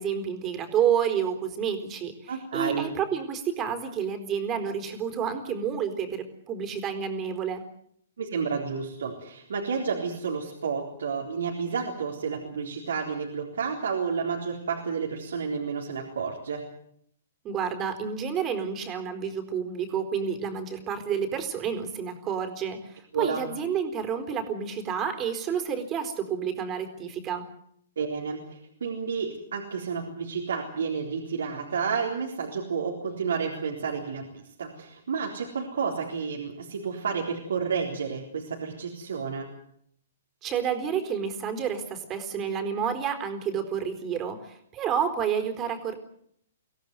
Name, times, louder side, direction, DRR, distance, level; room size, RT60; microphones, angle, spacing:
voice 1, 0.0-7.6 17.4-27.5 40.4-46.0, right 7 dB, 25° right, 7 dB, 4.2 m, -29 dB
voice 2, 2.3-2.9 8.2-16.6 23.1-23.4 28.0-39.5, right 5 dB, 75° right, 0 dB, 4.0 m, -31 dB
24.5 x 16.5 x 9.4 m, 0.70 s
hypercardioid pair, 125°, 0 cm